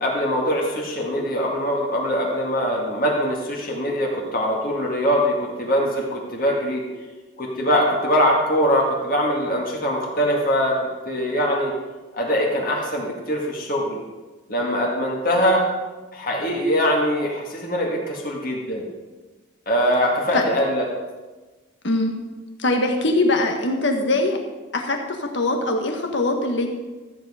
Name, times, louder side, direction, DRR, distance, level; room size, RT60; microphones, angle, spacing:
voice 1, 0.0-6.8 7.4-11.8 12.1-14.0 14.5-15.6 16.1-18.9 19.7-20.9, equal, 45° left, -2 dB, 2.0 m, -22 dB
voice 2, 22.6-24.4 24.7-26.7, left 2 dB, 65° left, 4 dB, 1.5 m, -22 dB
13.5 x 7.7 x 5.0 m, 1.3 s
head